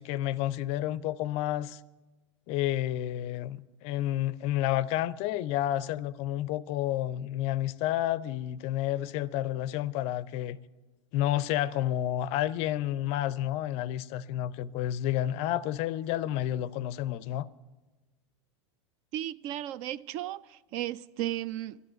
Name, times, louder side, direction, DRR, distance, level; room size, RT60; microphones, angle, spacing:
voice 1, 0.0-1.8 2.5-10.6 11.1-17.5, left 13 dB, 40° left, 0.5 m, -30 dB
voice 2, 19.1-21.8, right 13 dB, 40° right, 0.4 m, -35 dB
12.5 x 11.0 x 9.2 m
figure-of-eight pair, 85°, 16 cm